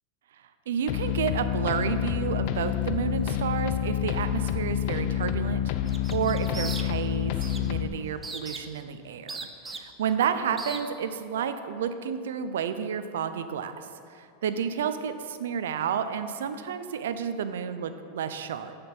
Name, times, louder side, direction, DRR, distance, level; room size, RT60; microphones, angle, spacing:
voice 1, 0.7-9.4 9.7-13.7 14.1-18.8, right 7 dB, 85° right, 10 dB, 0.5 m, -31 dB
sound 1, 0.9-7.9, left 10 dB, 55° left, 0.4 m, -28 dB
sound 2, 5.9-7.1 7.4-7.7 8.2-8.8 9.3-10.1 10.6-10.8, right 3 dB, 15° right, 0.6 m, -38 dB
10.5 x 5.1 x 4.4 m, 2.4 s
supercardioid pair, 130°, 0 cm